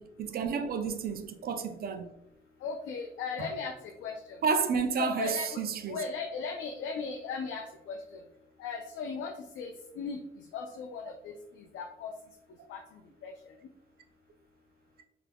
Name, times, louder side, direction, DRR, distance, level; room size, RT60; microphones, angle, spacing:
voice 1, 0.0-2.1 3.4-3.5 4.4-6.0, right 6 dB, 50° right, 0.4 m, -31 dB
voice 2, 2.6-4.4 5.0-5.6 5.9-8.2 8.6-12.1 12.7-13.3, left 5 dB, 75° left, 0.4 m, -38 dB
3.3 x 3.3 x 2.2 m
cardioid pair, 90°, 20 cm